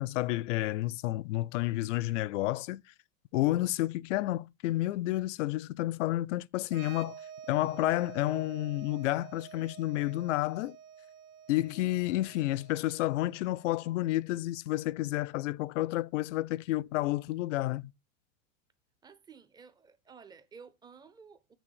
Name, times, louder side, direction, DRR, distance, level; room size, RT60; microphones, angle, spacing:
voice 1, 0.0-2.8 3.3-7.2 7.5-10.8 11.5-17.9, left 16 dB, 65° left, 0.5 m, -30 dB
sound 1, 6.7-14.2, right 8 dB, 90° right, 1.5 m, -50 dB
voice 2, 19.0-21.5, right 6 dB, 10° right, 0.5 m, -53 dB
6.9 x 6.2 x 6.4 m
supercardioid pair, 145°, 41 cm